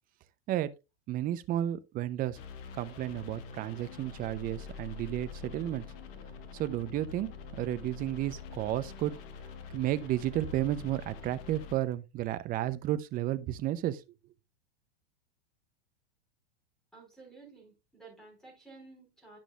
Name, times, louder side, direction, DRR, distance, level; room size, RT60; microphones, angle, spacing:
voice 1, 1.1-2.4 2.8-5.8 6.5-9.1 9.7-14.0, right 13 dB, 25° right, 0.6 m, -32 dB
sound 1, 2.3-11.7, left 5 dB, 45° left, 1.3 m, -45 dB
voice 2, 16.9-19.4, right 3 dB, ahead, 4.2 m, -53 dB
10.0 x 6.1 x 2.3 m
hypercardioid pair, 115°, 33 cm